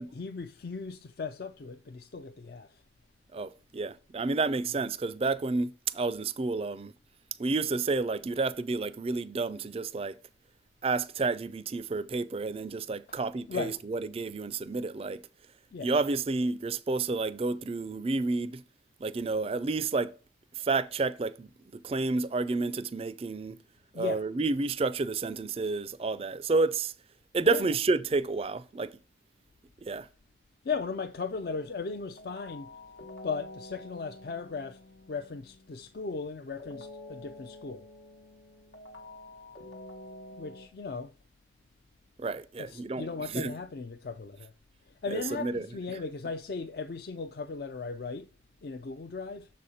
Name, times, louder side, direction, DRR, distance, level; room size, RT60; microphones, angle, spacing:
voice 1, 0.0-2.8 13.5-13.8 15.7-15.9 23.9-24.2 27.4-27.6 30.6-32.7 33.2-34.8 35.1-37.8 40.3-41.1 42.6-44.5 44.9-48.3 48.6-49.5, left 4 dB, 55° left, 0.4 m, -37 dB
voice 2, 3.3-6.9 7.4-10.2 10.8-15.2 15.8-18.6 19.0-20.1 20.5-23.6 23.9-26.9 27.3-28.9 29.8-30.1 42.2-43.5 45.1-45.7, right 3 dB, 30° right, 0.3 m, -30 dB
sound 1, 31.4-36.0 36.6-40.7, left 2 dB, 85° left, 1.1 m, -48 dB
6.9 x 4.2 x 4.8 m
head